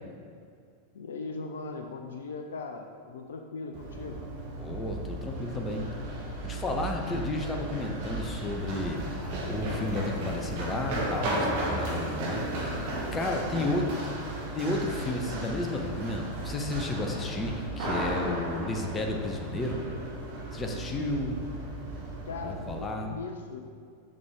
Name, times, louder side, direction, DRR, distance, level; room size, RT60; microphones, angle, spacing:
voice 1, 0.9-4.2 13.2-13.7 22.3-23.6, left 4 dB, 65° left, 4 dB, 0.5 m, -39 dB
Run, 3.7-22.8, right 1 dB, 50° right, 1.5 m, -35 dB
voice 2, 4.6-5.9 6.4-12.7 13.1-14.2 14.5-19.9 20.5-21.4 22.4-23.2, left 2 dB, 20° left, 3 dB, 0.8 m, -32 dB
7.3 x 6.2 x 3.5 m, 2.2 s
figure-of-eight pair, 90°, 0 cm